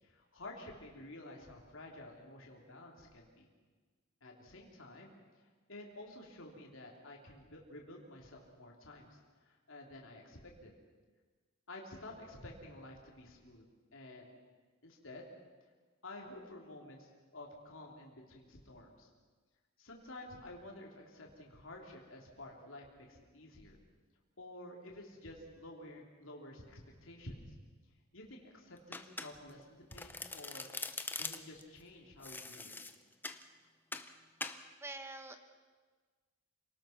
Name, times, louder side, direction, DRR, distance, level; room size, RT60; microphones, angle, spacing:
voice 1, 0.0-3.5 4.2-10.7 11.7-13.6 13.9-14.3 14.8-15.3 16.0-19.1 19.8-23.8 24.4-27.5 28.1-30.7 31.2-32.7, left 1 dB, 70° left, -1 dB, 3.5 m, -51 dB
Domestic sounds home sounds, 28.9-29.6 29.9-31.6 32.2-33.4 33.9-34.1 34.4-34.6, left 3 dB, 10° left, 0.9 m, -43 dB
voice 2, 34.8-35.4, right 2 dB, 10° right, 7 dB, 1.4 m, -45 dB
28.0 x 19.0 x 6.0 m, 1.4 s
head